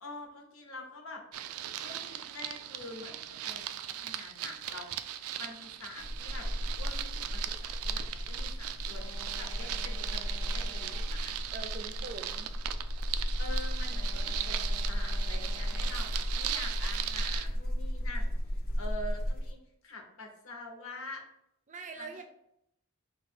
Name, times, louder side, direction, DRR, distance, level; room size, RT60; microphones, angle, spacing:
voice 1, 0.0-1.2 1.8-4.9 5.4-6.5 6.8-11.3 13.4-18.3 18.8-19.6 19.8-21.2 22.0-22.2, left 2 dB, 70° left, 1 dB, 1.0 m, -45 dB
sound 1, 1.3-17.5, right 11 dB, 85° right, 0.3 m, -39 dB
sound 2, 6.0-19.5, equal, 45° left, 0.7 m, -34 dB
Alarm, 8.9-11.4 13.9-16.4, left 3 dB, 30° left, 0.3 m, -52 dB
voice 2, 11.5-12.5 21.7-22.2, right 3 dB, 35° right, 5 dB, 0.6 m, -43 dB
4.6 x 2.4 x 4.2 m, 0.76 s
head